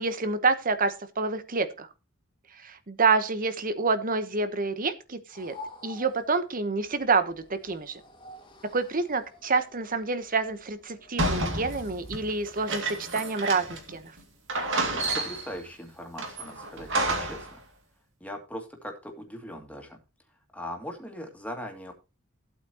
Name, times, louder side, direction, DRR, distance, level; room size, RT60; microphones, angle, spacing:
voice 1, 0.0-1.9 2.6-5.5 5.8-8.0 8.7-14.1, right 4 dB, 40° right, 11 dB, 1.1 m, -28 dB
sound 1, 5.3-12.3, left 2 dB, 25° left, 2.0 m, -49 dB
sound 2, 11.2-13.9 14.2-14.3 14.5-15.6 16.2-17.5, right 2 dB, 65° right, 2.4 m, -30 dB
voice 2, 14.9-17.6 18.2-20.0 20.5-21.9, equal, 5° left, 2 dB, 2.4 m, -40 dB
14.5 x 8.5 x 3.0 m, 0.28 s
head